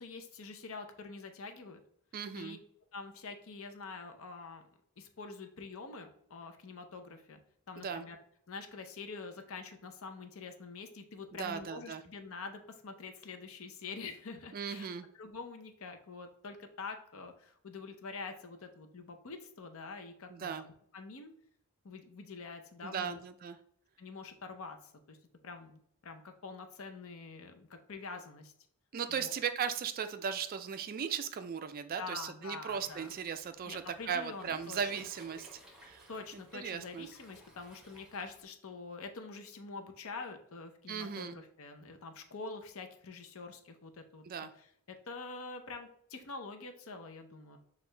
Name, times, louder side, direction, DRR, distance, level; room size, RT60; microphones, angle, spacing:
voice 1, 0.0-1.8 2.3-2.6 2.9-4.7 5.0-7.4 7.7-8.2 8.5-14.9 15.1-21.3 21.8-23.2 24.0-24.8 25.1-25.2 25.4-28.5 29.1-29.3 32.0-33.1 33.7-34.9 36.1-44.2 44.6-47.6, left 4 dB, 65° left, 6 dB, 0.6 m, -46 dB
voice 2, 2.1-2.6 7.8-8.0 11.4-12.0 14.5-15.1 20.3-20.6 22.8-23.6 28.9-36.1 36.3-37.1 40.9-41.4 44.2-44.5, right 7 dB, 40° right, 10 dB, 0.3 m, -37 dB
Waves surf, 32.7-38.4, equal, 5° right, 1.0 m, -58 dB
6.3 x 2.4 x 3.2 m, 0.66 s
head